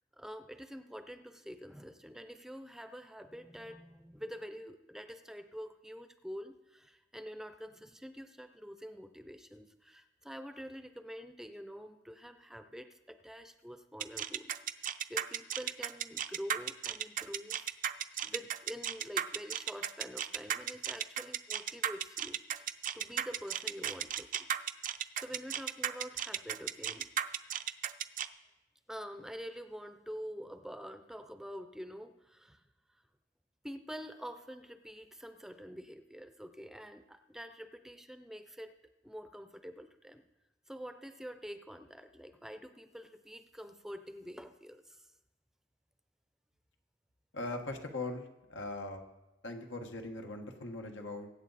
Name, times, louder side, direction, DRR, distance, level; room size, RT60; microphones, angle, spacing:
voice 1, 0.1-24.5 25.2-27.1 28.9-32.6 33.6-38.7 39.0-40.2 40.7-45.1, equal, 5° right, 9 dB, 0.6 m, -47 dB
sound 1, 14.0-28.3, right 9 dB, 45° right, 0.5 m, -35 dB
voice 2, 47.3-49.1 49.4-51.3, left 2 dB, 90° left, 3 dB, 1.6 m, -40 dB
23.0 x 8.2 x 4.1 m, 1.0 s
head